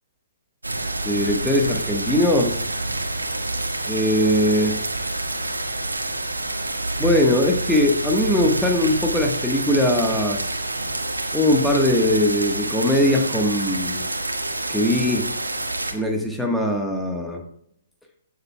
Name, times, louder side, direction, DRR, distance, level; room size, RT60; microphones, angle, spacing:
sound 1, 0.6-15.9, right 2 dB, 85° right, 1.6 m, -27 dB
voice 1, 1.0-2.6 3.9-4.8 7.0-10.4 11.3-14.0 14.7-15.3 15.9-17.4, left 1 dB, ahead, 1 dB, 1.3 m, -20 dB
16.0 x 7.2 x 2.3 m, 0.72 s
figure-of-eight pair, 125°, 0 cm